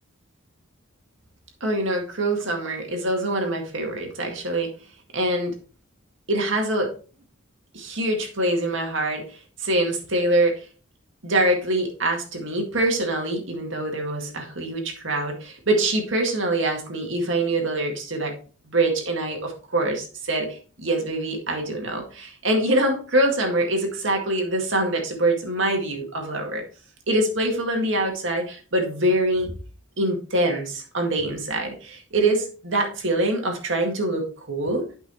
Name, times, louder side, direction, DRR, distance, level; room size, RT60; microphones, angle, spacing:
voice 1, 1.6-4.7 5.1-5.6 6.3-6.9 7.7-10.7 11.2-18.3 18.7-26.6 27.1-29.5 30.0-34.9, right 1 dB, 65° right, 2 dB, 2.0 m, -24 dB
12.0 x 5.7 x 3.1 m, 0.37 s
head